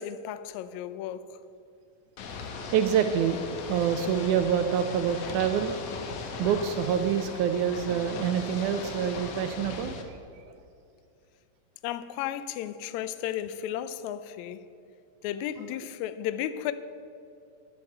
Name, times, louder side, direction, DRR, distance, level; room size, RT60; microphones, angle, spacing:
voice 1, 0.0-1.4 11.8-14.7 15.2-16.7, left 11 dB, 85° left, 1.6 m, -34 dB
Ocean / Boat Water vehicle, 2.2-10.0, left 4 dB, 65° left, 1.7 m, -38 dB
voice 2, 2.7-5.8 6.4-10.2 10.5-10.6, right 8 dB, 80° right, 1.9 m, -26 dB
10.5 x 7.9 x 7.8 m
omnidirectional pair, 3.8 m